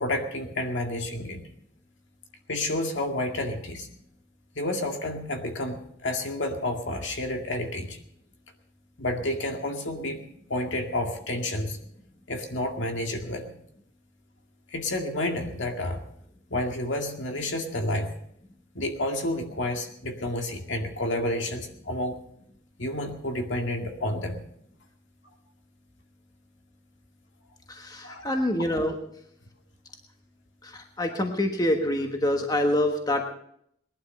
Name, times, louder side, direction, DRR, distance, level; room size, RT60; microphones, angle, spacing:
voice 1, 0.0-1.4 2.5-3.9 4.6-8.0 9.0-10.2 10.5-11.8 12.3-13.5 14.7-16.0 16.5-18.1 18.7-22.2 22.8-24.4 28.0-28.3, left 1 dB, 65° left, 3 dB, 2.1 m, -30 dB
voice 2, 27.7-29.0 30.6-33.3, left 1 dB, 20° left, 4 dB, 1.3 m, -26 dB
20.0 x 11.5 x 5.4 m, 0.70 s
head